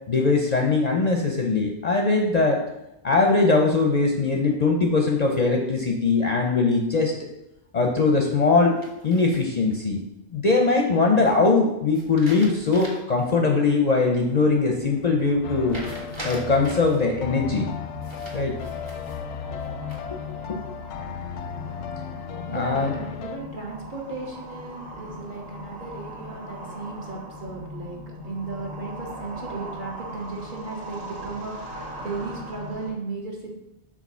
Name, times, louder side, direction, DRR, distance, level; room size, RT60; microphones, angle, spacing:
voice 1, 0.1-2.6 3.0-7.1 7.7-10.0 10.3-15.8 16.2-17.7 18.3-18.5 20.1-20.2 20.5-20.6 22.5-22.9, left 3 dB, 45° left, 1 dB, 0.6 m, -21 dB
sound 1, 8.8-9.7 11.9-13.2 13.6-13.7 15.7-17.0 18.0-19.2 19.6-20.2, right 1 dB, 25° right, 1.1 m, -40 dB
sound 2, 14.2-32.9, equal, 80° right, 1.6 m, -40 dB
sound 3, 15.4-23.4, left 7 dB, 90° left, 0.9 m, -35 dB
voice 2, 22.5-33.5, right 3 dB, 50° right, -1 dB, 1.3 m, -35 dB
5.0 x 3.6 x 5.5 m, 0.90 s
omnidirectional pair, 1.1 m